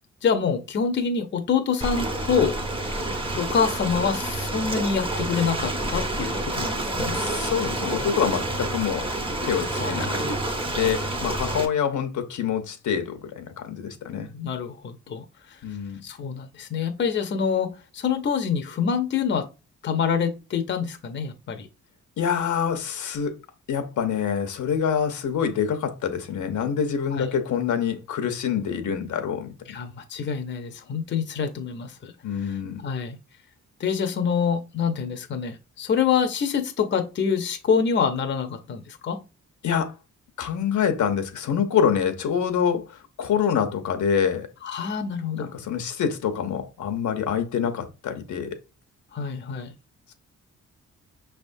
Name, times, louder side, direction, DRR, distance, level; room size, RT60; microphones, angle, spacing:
voice 1, 0.2-2.6 3.4-7.2 9.8-10.0 14.3-15.6 16.0-19.4 19.8-21.7 27.1-27.3 29.7-32.1 32.4-33.2 33.8-39.2 44.6-45.5 49.1-49.7, left 6 dB, 40° left, 0.6 m, -26 dB
Ocean, 1.8-11.7, right 1 dB, 20° right, 0.8 m, -28 dB
voice 2, 7.1-9.1 9.4-10.3 10.7-14.3 15.6-16.0 22.2-23.3 23.7-29.5 32.2-32.8 39.6-39.9 40.4-44.5 45.3-48.5, left 7 dB, 80° left, 0.9 m, -26 dB
5.9 x 3.4 x 2.6 m
wide cardioid pair, 155°, 29 cm